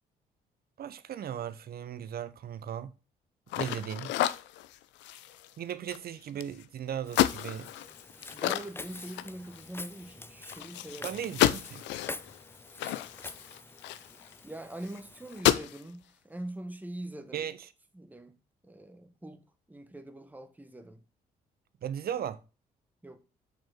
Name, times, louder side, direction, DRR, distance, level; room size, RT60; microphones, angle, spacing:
voice 1, 0.8-2.9 3.6-4.1 5.6-7.7 11.0-11.8 17.3-17.6 21.8-22.4, right 9 dB, 55° right, 0.8 m, -37 dB
sound 1, 3.5-6.6 7.1-9.8 10.1-10.2 10.5-14.4 14.8-15.0 15.3-15.8, left 13 dB, 80° left, 0.5 m, -31 dB
Walk footsteps, 7.1-15.4, left 2 dB, 10° left, 0.5 m, -47 dB
voice 2, 8.3-11.3 14.4-17.5 17.9-18.4 18.6-21.0 23.0-23.2, right 1 dB, 10° right, 1.2 m, -43 dB
6.4 x 4.4 x 4.5 m
supercardioid pair, 55°, 18 cm